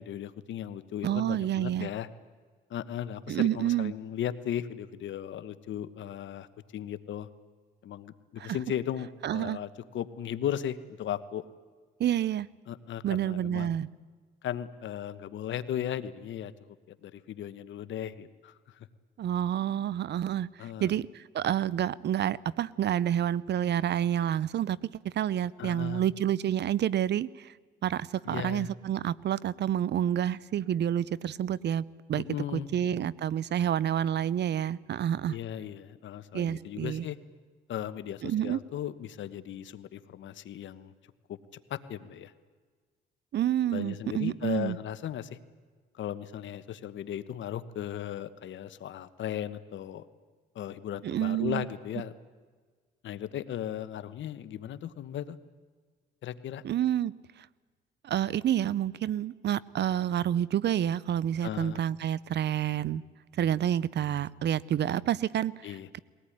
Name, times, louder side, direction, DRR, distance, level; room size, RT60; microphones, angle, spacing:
voice 1, 0.0-2.1 2.7-6.5 6.7-7.3 7.8-11.4 12.7-13.7 14.4-16.5 17.0-18.9 20.6-20.9 25.6-26.0 28.2-28.7 32.1-33.1 35.3-37.2 37.7-40.9 41.3-41.4 41.7-42.3 43.7-45.4 45.9-50.0 50.5-52.1 53.0-55.4 56.2-56.6 61.4-61.8 65.6-65.9, left 10 dB, 70° left, 13 dB, 1.2 m, -36 dB
voice 2, 1.0-1.9 3.3-3.9 8.4-8.6 9.2-9.6 12.0-12.5 13.0-13.9 19.2-24.8 25.0-27.5 27.8-32.2 32.5-35.4 36.3-37.0 38.2-38.6 43.3-44.8 51.0-51.7 56.6-57.1 58.0-63.0 63.4-65.7, right 10 dB, 60° right, 22 dB, 0.7 m, -29 dB
22.0 x 18.0 x 10.0 m, 1.5 s
cardioid pair, 90°, 20 cm